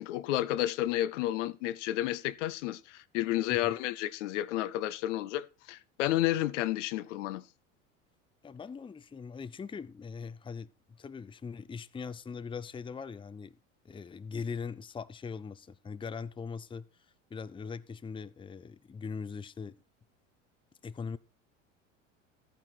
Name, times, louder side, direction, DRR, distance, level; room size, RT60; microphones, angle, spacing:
voice 1, 0.0-7.4, left 14 dB, 70° left, 0.8 m, -31 dB
voice 2, 8.4-13.6 13.8-16.9 17.3-19.8 20.8-21.2, left 5 dB, 15° left, 0.7 m, -41 dB
13.5 x 9.3 x 4.5 m
hypercardioid pair, 80°, 38 cm